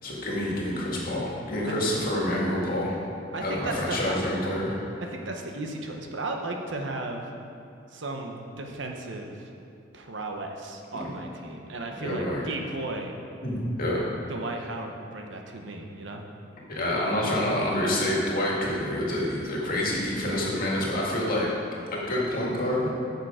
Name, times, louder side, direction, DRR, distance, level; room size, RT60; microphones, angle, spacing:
voice 1, 0.0-3.0 3.4-4.7 10.9-11.0 12.0-12.4 13.4-14.0 16.7-21.5 21.9-22.9, left 1 dB, 50° left, -4 dB, 2.0 m, -27 dB
voice 2, 3.3-4.2 5.0-7.2 7.9-9.5 9.9-13.1 14.3-16.2, right 2 dB, 75° right, 2 dB, 0.9 m, -35 dB
9.2 x 6.7 x 5.0 m, 2.7 s
head